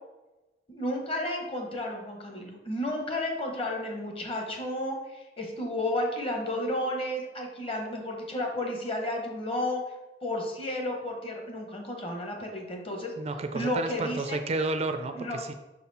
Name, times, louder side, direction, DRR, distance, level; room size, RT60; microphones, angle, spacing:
voice 1, 0.7-9.8 10.2-13.1 13.5-14.4 15.1-15.4, left 1 dB, 35° left, 2 dB, 1.1 m, -32 dB
voice 2, 13.2-15.5, right 3 dB, 35° right, 8 dB, 0.4 m, -31 dB
5.9 x 4.2 x 4.1 m, 1.1 s
head